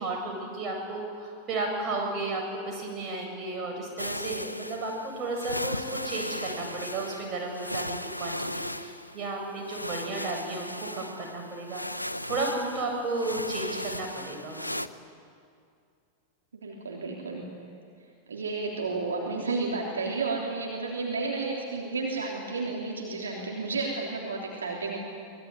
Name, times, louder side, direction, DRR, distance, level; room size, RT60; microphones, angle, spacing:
voice 1, 0.0-14.8, right 2 dB, 30° right, 1 dB, 7.9 m, -33 dB
sound 1, 4.0-14.9, left 1 dB, 85° left, 0.7 m, -37 dB
voice 2, 16.5-17.5 18.3-25.0, right 3 dB, 70° right, -2 dB, 3.3 m, -32 dB
24.5 x 20.5 x 9.6 m, 2.3 s
figure-of-eight pair, 90°, 0 cm